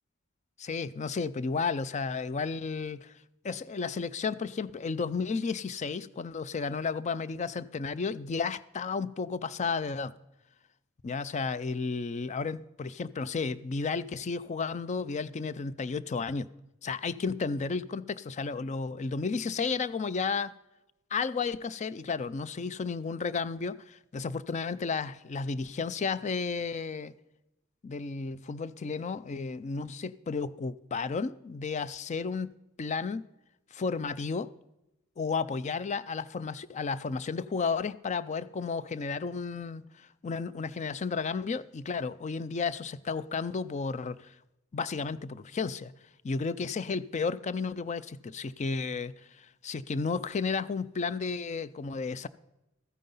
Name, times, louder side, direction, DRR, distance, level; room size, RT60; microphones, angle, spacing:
voice 1, 0.6-3.1 3.4-10.1 11.0-16.5 16.8-20.5 21.1-27.1 27.8-32.5 32.8-33.3 33.7-34.5 35.2-44.3 44.7-45.9 46.2-52.3, left 4 dB, 35° left, 0.4 m, -33 dB
13.5 x 9.3 x 5.4 m
head